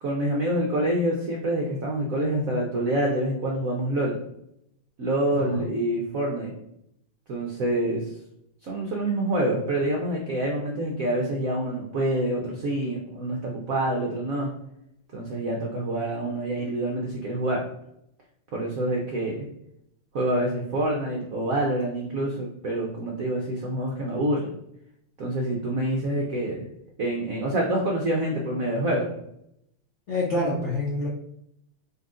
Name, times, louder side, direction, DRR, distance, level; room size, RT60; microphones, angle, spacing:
voice 1, 0.0-4.2 5.0-6.5 7.3-8.2 8.6-14.5 15.1-17.6 18.5-19.5 20.1-24.5 25.2-26.7 27.0-29.1, right 1 dB, 70° right, -2 dB, 0.7 m, -26 dB
voice 2, 5.3-5.7 30.1-31.1, left 1 dB, 65° left, -5 dB, 0.7 m, -27 dB
4.1 x 2.9 x 3.7 m, 0.77 s
omnidirectional pair, 2.4 m